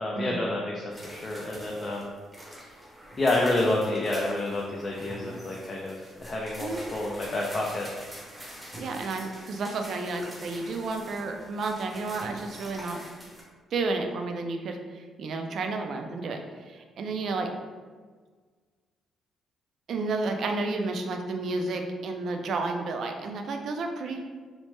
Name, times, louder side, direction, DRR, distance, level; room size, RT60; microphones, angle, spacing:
voice 1, 0.0-2.1 2.5-2.7 3.2-7.9, left 2 dB, 35° left, -3 dB, 0.4 m, -29 dB
sound 1, 0.9-13.4, equal, 10° right, 0.7 m, -45 dB
voice 2, 8.8-13.0 13.7-16.4 16.7-17.5 19.9-24.3, right 3 dB, 65° right, 4 dB, 0.3 m, -31 dB
3.1 x 2.1 x 3.1 m, 1.5 s
cardioid pair, 90°, 0 cm